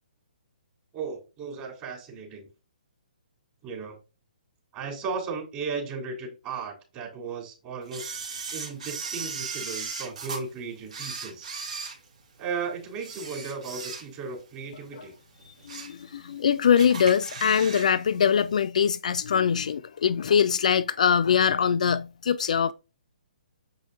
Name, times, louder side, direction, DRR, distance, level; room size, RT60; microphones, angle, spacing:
voice 1, 0.9-2.5 3.6-4.0 4.7-8.1 8.5-11.5 12.4-15.1, right 5 dB, 25° right, 3.3 m, -35 dB
Camera, 7.9-10.4 10.9-12.5 13.0-14.4 14.7-14.9 15.4-16.0 16.3-16.4 16.8-17.9 18.2-18.3, right 5 dB, 55° right, 2.6 m, -37 dB
voice 2, 15.6-22.7, left 7 dB, 55° left, 0.4 m, -23 dB
7.4 x 5.5 x 2.6 m
figure-of-eight pair, 130°, 5 cm